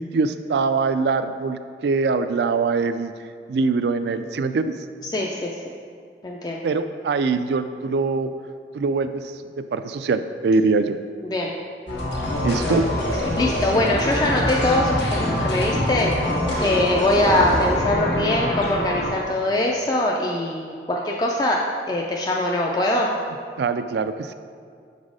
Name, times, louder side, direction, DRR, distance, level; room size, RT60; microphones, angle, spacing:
voice 1, 0.0-3.1 3.5-4.7 6.6-8.3 8.7-9.2 9.7-11.0 12.4-12.9 23.6-24.3, right 4 dB, 75° right, 11 dB, 0.3 m, -23 dB
voice 2, 5.0-5.6 6.2-6.7 11.2-11.6 11.9-12.1 12.7-12.8 13.4-16.3 16.6-21.6 21.9-23.1, left 1 dB, 20° left, -2 dB, 0.3 m, -23 dB
sound 1, 11.9-19.1, left 1 dB, 90° left, 1.6 m, -24 dB
7.0 x 4.1 x 4.8 m, 2.2 s
head